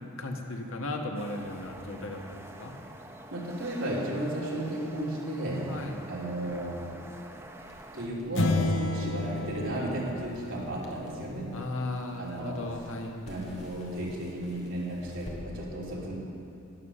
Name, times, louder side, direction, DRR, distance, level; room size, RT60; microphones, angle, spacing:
voice 1, 0.2-2.8 5.7-6.0 11.5-13.2, left 2 dB, 90° left, 2 dB, 1.5 m, -36 dB
sound 1, 1.1-8.1, right 1 dB, 10° right, 0.7 m, -47 dB
voice 2, 3.3-5.7 6.1-6.8 7.9-11.5 12.2-12.8 13.2-16.1, right 1 dB, 75° right, -5 dB, 3.2 m, -34 dB
Crackle, 7.5-15.4, equal, 35° left, 1.8 m, -52 dB
sound 2, 8.4-11.0, left 2 dB, 70° left, 0.8 m, -30 dB
12.0 x 10.0 x 6.6 m, 2.7 s
head